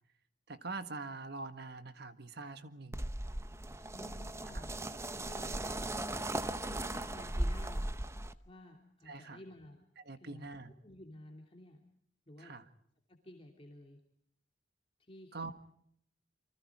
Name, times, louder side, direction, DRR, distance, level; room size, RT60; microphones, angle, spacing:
voice 1, 0.5-3.1 4.5-4.6 9.1-9.4 10.0-10.7 12.4-12.7 15.3-15.5, right 3 dB, 60° right, 10 dB, 1.7 m, -44 dB
sound 1, 2.9-8.3, right 1 dB, 15° right, 0.8 m, -37 dB
voice 2, 3.9-6.2 6.7-7.9 8.4-9.8 10.2-10.5 10.8-11.8 12.3-12.5 13.1-14.0 15.0-15.5, left 1 dB, 30° left, 1 dB, 2.9 m, -53 dB
29.0 x 24.5 x 4.8 m, 0.70 s
head